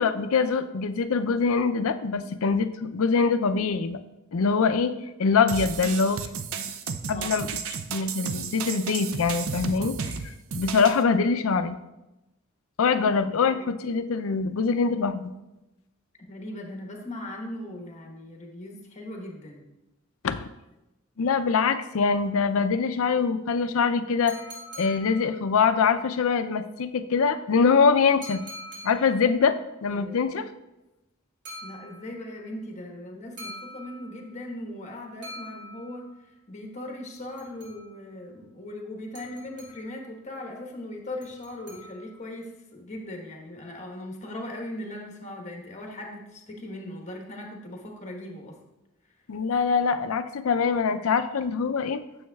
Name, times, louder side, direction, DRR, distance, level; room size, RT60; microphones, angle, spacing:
voice 1, 0.0-4.0 4.3-4.9 5.2-6.7 7.1-7.5 7.9-10.1 10.5-11.8 12.8-15.3 20.2-20.5 21.2-24.4 24.8-28.4 28.8-29.6 29.8-30.5 49.3-52.0, left 5 dB, 80° left, 10 dB, 0.5 m, -24 dB
sound 1, 5.5-11.0, right 6 dB, 80° right, 0.5 m, -33 dB
voice 2, 7.1-7.7 13.4-13.6 16.3-19.6 29.9-30.2 31.6-36.1 36.5-48.6, left 1 dB, 35° left, 1 dB, 1.2 m, -39 dB
sound 2, 24.3-25.8 28.2-29.4 31.4-32.3 33.4-34.4 35.2-36.2 37.1-38.1 39.1-40.1 41.2-42.3, equal, 55° right, 2.3 m, -44 dB
9.4 x 7.0 x 2.3 m, 0.95 s
head